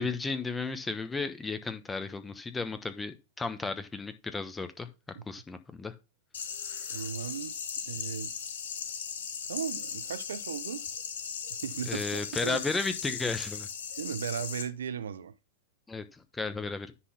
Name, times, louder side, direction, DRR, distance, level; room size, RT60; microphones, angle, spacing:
voice 1, 0.0-4.9 5.3-5.9 6.7-6.8 11.9-13.7 15.9-16.9, left 4 dB, 15° left, 1.1 m, -34 dB
sound 1, 6.3-14.6, left 7 dB, 70° left, 2.2 m, -38 dB
voice 2, 6.9-7.5 7.9-8.3 9.5-10.8 11.6-12.0 12.4-12.6 14.0-15.3, right 8 dB, 75° right, 0.6 m, -36 dB
10.0 x 4.0 x 5.7 m
hypercardioid pair, 105°, 0 cm